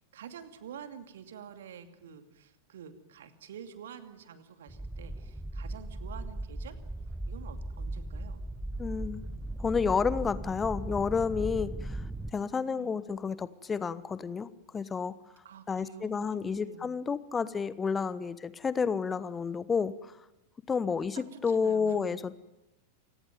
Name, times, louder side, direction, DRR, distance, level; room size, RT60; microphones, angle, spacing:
voice 1, 0.0-6.8 7.3-8.4 12.7-12.9 15.4-16.9 21.0-22.2, right 8 dB, 60° right, 10 dB, 2.5 m, -48 dB
sound 1, 4.7-12.3, right 1 dB, 5° right, 1.1 m, -38 dB
voice 2, 8.8-9.2 9.6-12.0 12.3-14.5 14.7-15.1 15.7-20.2 20.7-22.4, left 5 dB, 15° left, 16 dB, 1.1 m, -30 dB
29.0 x 17.5 x 9.4 m, 0.94 s
figure-of-eight pair, 90°, 0 cm